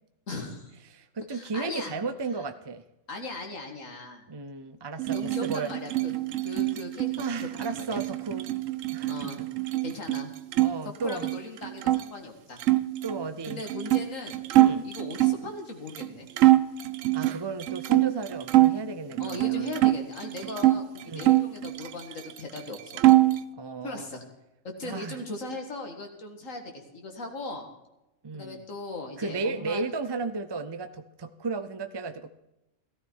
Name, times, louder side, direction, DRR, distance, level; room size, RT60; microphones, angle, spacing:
voice 1, 0.3-0.7 1.3-1.9 3.1-4.2 5.1-6.1 6.4-8.0 9.1-9.4 9.8-10.3 11.0-12.6 13.5-14.4 14.8-16.3 19.2-23.0 23.8-24.3 24.6-27.7 28.3-29.8, left 2 dB, 80° left, 2 dB, 2.2 m, -38 dB
voice 2, 0.9-2.8 4.3-5.7 7.2-8.5 8.9-9.5 10.6-11.3 13.0-13.6 14.6-14.9 17.1-19.8 21.1-21.3 23.5-24.1 24.8-25.2 28.2-28.6 29.2-32.4, right 4 dB, 35° right, 10 dB, 0.4 m, -34 dB
sound 1, 5.0-10.7 11.0-12.0 12.6-15.5 16.0-16.1 16.4-18.8 19.2-20.8 21.2-22.3 22.6-23.4, right 16 dB, 80° right, 1.0 m, -24 dB
15.0 x 13.5 x 4.6 m, 0.93 s
omnidirectional pair, 1.3 m